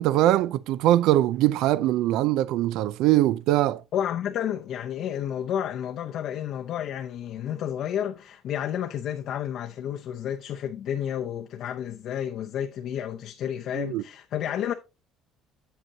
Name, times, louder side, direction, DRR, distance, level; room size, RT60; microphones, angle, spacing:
voice 1, 0.0-3.8 13.7-14.0, right 14 dB, 80° right, 0.3 m, -22 dB
voice 2, 3.9-14.7, left 10 dB, 60° left, 0.6 m, -31 dB
7.9 x 7.7 x 2.7 m
cardioid pair, 135°, 0 cm